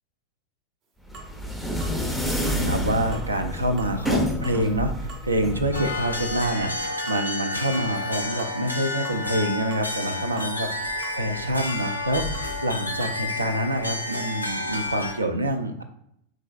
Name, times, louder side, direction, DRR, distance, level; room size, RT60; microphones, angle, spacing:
sound 1, 1.1-6.9, left 1 dB, ahead, 0.5 m, -29 dB
sound 2, 1.1-1.3 1.8-2.0 2.5-2.6 3.1-3.3 3.8-4.0 4.4-4.6 5.1-5.3 5.7-5.9 6.4-6.6 7.1-7.2 7.7-8.0 8.4-8.6 9.0-9.2 9.7-9.9 10.4-10.5 11.0-11.2 11.7-11.9 12.3-12.5 13.0-13.2, right 4 dB, 35° right, 0.7 m, -43 dB
voice 1, 2.2-15.8, right 1 dB, 80° right, 6 dB, 0.4 m, -27 dB
sound 3, 5.7-15.1, left 2 dB, 90° left, 0.5 m, -30 dB
3.6 x 3.1 x 2.3 m, 0.75 s
figure-of-eight pair, 90°, 0 cm